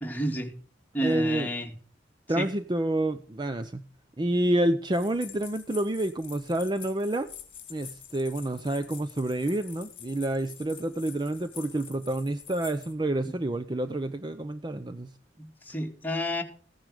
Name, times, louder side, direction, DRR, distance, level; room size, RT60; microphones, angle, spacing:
voice 1, 0.0-0.5 0.9-1.7 2.4-2.5 15.4-16.4, equal, 10° left, 2 dB, 2.2 m, -30 dB
voice 2, 1.0-1.5 2.3-3.8 4.2-7.3 7.7-15.1, right 1 dB, 25° right, 11 dB, 0.6 m, -28 dB
sound 1, 4.9-12.9, left 9 dB, 30° left, 2.4 m, -47 dB
15.5 x 9.7 x 4.9 m, 0.43 s
head